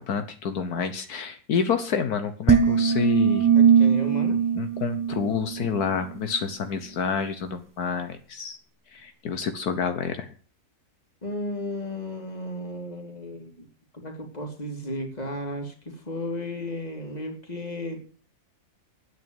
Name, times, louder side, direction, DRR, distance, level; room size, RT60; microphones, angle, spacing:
voice 1, 0.0-3.5 4.5-8.6 8.9-10.3, left 6 dB, 75° left, 8 dB, 1.6 m, -28 dB
sound 1, 2.5-5.8, right 7 dB, 30° right, 0.3 m, -20 dB
voice 2, 3.5-4.4 11.2-13.7 14.0-18.0, left 1 dB, 25° left, 3 dB, 2.9 m, -34 dB
9.9 x 9.2 x 8.9 m, 0.42 s
omnidirectional pair, 1.6 m